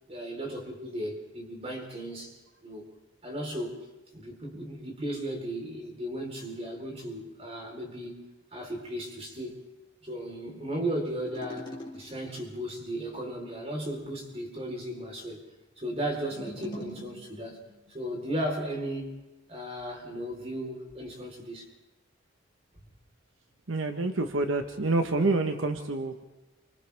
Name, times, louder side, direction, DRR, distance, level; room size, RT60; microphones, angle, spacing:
voice 1, 0.1-2.4 2.6-2.9 3.2-3.8 4.1-8.3 8.5-9.6 10.0-11.7 11.9-15.4 15.8-17.6 17.9-19.2 19.5-21.6, right 1 dB, 30° right, 0 dB, 4.2 m, -35 dB
sound 1, 11.1-12.6 16.1-17.9, equal, 25° left, 3.2 m, -44 dB
voice 2, 23.7-26.2, right 2 dB, 80° right, 5 dB, 1.3 m, -27 dB
28.5 x 25.5 x 3.5 m, 1.0 s
head